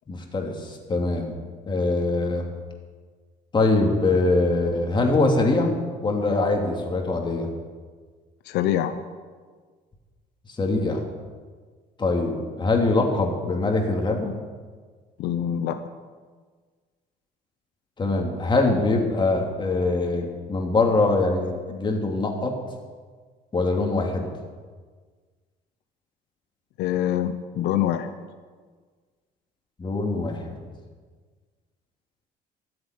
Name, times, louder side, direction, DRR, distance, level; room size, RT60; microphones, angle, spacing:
voice 1, 0.1-1.4 1.7-2.5 3.5-5.7 6.0-7.5 10.6-11.0 12.0-14.3 18.0-22.6 23.5-24.3 29.8-30.6, left 2 dB, 25° left, 1 dB, 2.8 m, -23 dB
voice 2, 8.4-9.0 15.2-15.8 26.8-28.1, left 11 dB, 85° left, 8 dB, 0.8 m, -25 dB
13.5 x 7.9 x 9.8 m, 1.5 s
cardioid pair, 110°, 17 cm